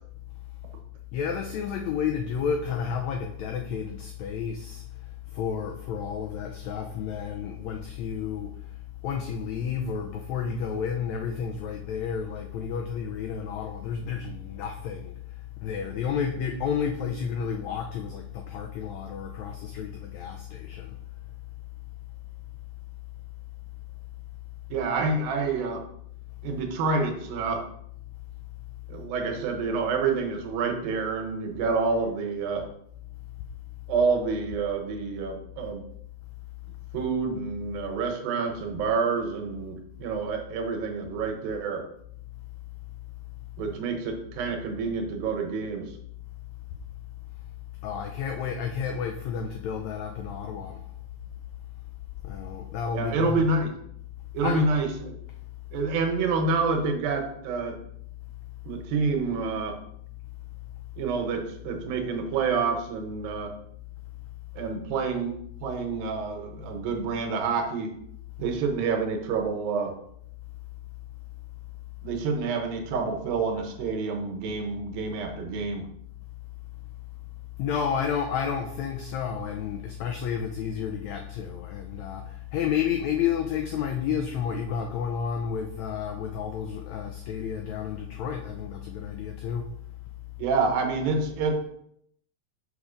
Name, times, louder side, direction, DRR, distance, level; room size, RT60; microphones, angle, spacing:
voice 1, 1.1-8.7 9.0-21.0 47.8-50.8 52.2-53.4 54.4-54.6 77.6-89.8, left 7 dB, 85° left, 1.5 m, -31 dB
voice 2, 24.7-25.8 26.4-27.6 28.9-32.7 33.9-35.9 36.9-41.8 43.6-45.9 52.9-53.7 54.3-55.2 55.7-57.8 58.6-59.8 61.0-63.5 64.6-67.9 68.4-70.0 72.0-75.9 90.4-91.5, right 4 dB, 85° right, 2.8 m, -28 dB
6.4 x 4.7 x 5.0 m
omnidirectional pair, 4.0 m